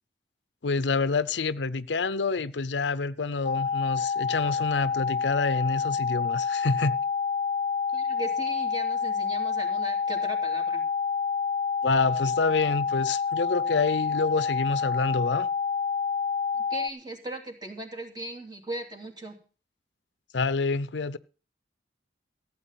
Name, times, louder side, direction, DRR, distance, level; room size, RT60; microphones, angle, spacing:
voice 1, 0.6-7.0 11.8-15.5 20.3-21.2, left 4 dB, 85° left, 0.7 m, -27 dB
sound 1, 3.4-16.9, left 5 dB, 30° left, 0.8 m, -28 dB
voice 2, 7.9-10.8 16.5-19.4, right 1 dB, 25° right, 3.0 m, -38 dB
15.5 x 8.7 x 5.8 m
head